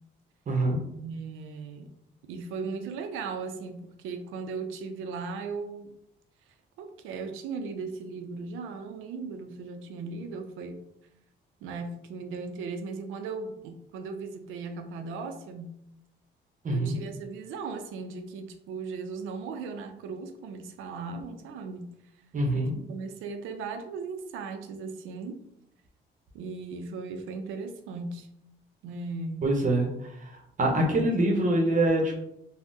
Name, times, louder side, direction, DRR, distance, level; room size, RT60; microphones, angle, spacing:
voice 1, 0.5-0.8 16.6-16.9 22.3-22.7 29.4-30.3 30.6-32.2, right 1 dB, 40° right, 2 dB, 0.7 m, -25 dB
voice 2, 1.0-1.9 2.3-5.9 6.8-10.8 11.6-15.7 16.7-21.9 22.5-25.4 26.3-28.3 28.8-29.5, right 4 dB, 90° right, 7 dB, 0.4 m, -37 dB
3.5 x 2.0 x 2.6 m, 0.78 s
cardioid pair, 90°, 20 cm